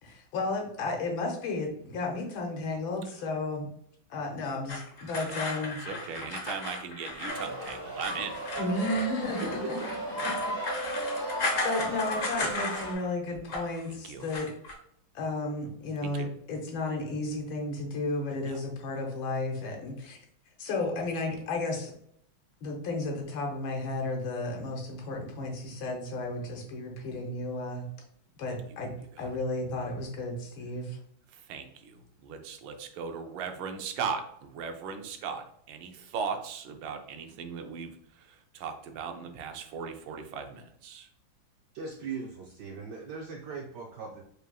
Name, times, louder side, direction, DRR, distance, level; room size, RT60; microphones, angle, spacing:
voice 1, 0.0-3.7 4.1-5.8 8.6-9.8 10.1-11.3 11.6-14.5 15.1-20.2 20.6-21.9 22.6-27.8 28.4-28.9 29.2-31.0, left 2 dB, 80° left, 1 dB, 1.7 m, -33 dB
sound 1, 4.7-13.1 13.3-13.8 14.2-14.7, left 2 dB, 50° left, 1.1 m, -35 dB
voice 2, 5.6-8.4 9.4-9.7 13.9-14.3 16.0-16.3 18.5-18.6 29.1-29.3 31.5-37.9 38.3-41.1, right 6 dB, 90° right, 6 dB, 1.4 m, -38 dB
sound 2, 7.3-12.9, right 1 dB, 40° right, 2.2 m, -35 dB
voice 3, 41.7-44.2, right 5 dB, 75° right, 1 dB, 1.0 m, -39 dB
4.8 x 3.4 x 2.3 m, 0.69 s
omnidirectional pair, 2.2 m